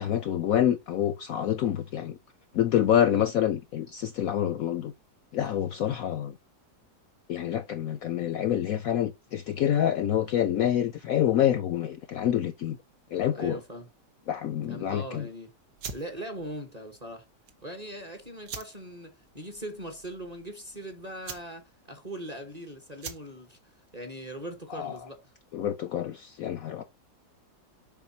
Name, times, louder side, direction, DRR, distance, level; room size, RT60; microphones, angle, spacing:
voice 1, 0.0-2.2 2.5-4.9 5.3-6.3 7.3-12.8 13.1-13.6 14.3-15.3 24.7-24.9 25.5-26.8, left 10 dB, 65° left, 0.9 m, -27 dB
voice 2, 13.3-13.9 14.7-15.5 15.9-17.3 17.6-25.3, right 1 dB, 25° right, 1.0 m, -40 dB
sound 1, 15.7-25.2, right 5 dB, 65° right, 1.6 m, -46 dB
7.3 x 5.2 x 2.7 m
omnidirectional pair, 1.9 m